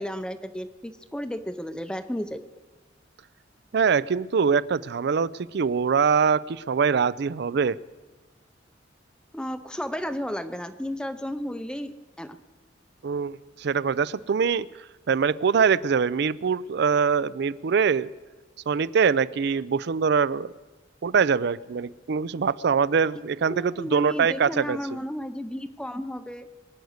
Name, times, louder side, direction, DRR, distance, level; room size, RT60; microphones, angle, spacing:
voice 1, 0.0-2.4 9.3-12.4 23.5-26.5, equal, 5° left, 10 dB, 0.5 m, -33 dB
voice 2, 3.7-7.8 13.0-14.7 15.1-18.1 18.7-20.5 21.0-24.8, right 6 dB, 65° right, 19 dB, 0.4 m, -23 dB
23.5 x 9.4 x 6.5 m, 1.2 s
head